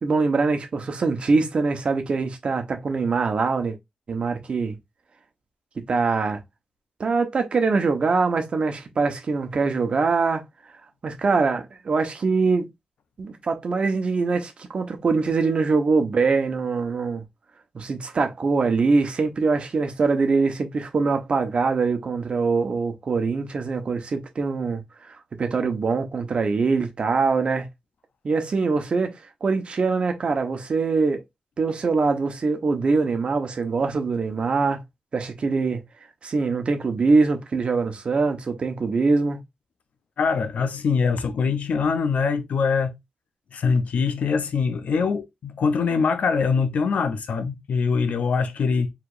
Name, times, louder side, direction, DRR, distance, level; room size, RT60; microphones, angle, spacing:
voice 1, 0.0-3.8 4.1-4.8 5.9-6.4 7.0-10.4 11.0-12.7 13.2-17.2 17.7-24.8 25.4-27.7 28.2-31.2 31.6-34.8 35.1-35.8 36.2-39.4, right 4 dB, 50° right, 1.0 m, -23 dB
voice 2, 40.2-43.0 43.5-48.9, left 5 dB, 90° left, 0.7 m, -23 dB
4.8 x 3.4 x 2.5 m
wide cardioid pair, 135°, 2 cm